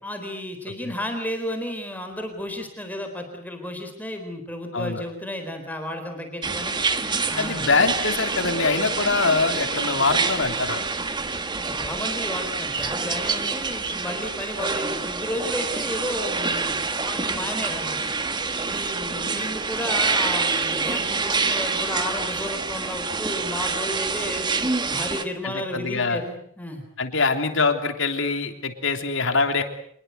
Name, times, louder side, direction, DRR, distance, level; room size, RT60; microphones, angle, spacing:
voice 1, 0.0-6.8 7.3-7.7 11.6-18.1 18.6-24.5 24.9-26.8, left 1 dB, 10° left, 4 dB, 4.1 m, -33 dB
sound 1, 6.4-25.2, right 4 dB, 20° right, 1.5 m, -27 dB
voice 2, 7.4-10.8 25.4-26.2 27.0-29.6, left 4 dB, 60° left, 6 dB, 3.3 m, -23 dB
27.0 x 22.0 x 8.1 m, 0.65 s
head